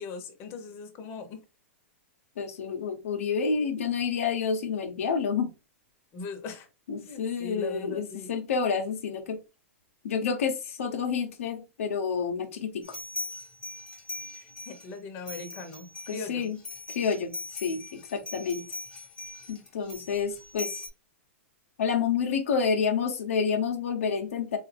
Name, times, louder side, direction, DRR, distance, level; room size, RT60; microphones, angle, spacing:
voice 1, 0.0-1.4 6.1-6.7 7.0-8.3 14.3-16.5, left 4 dB, 35° left, 5 dB, 1.0 m, -40 dB
voice 2, 2.4-5.5 6.9-9.4 10.0-12.8 16.1-16.6 16.9-18.6 19.5-20.7 21.8-24.6, left 6 dB, 80° left, 4 dB, 0.8 m, -29 dB
sound 1, 12.8-14.9 15.3-20.9, left 2 dB, 10° left, 1.1 m, -40 dB
4.0 x 2.4 x 3.3 m, 0.28 s
hypercardioid pair, 140°, 7 cm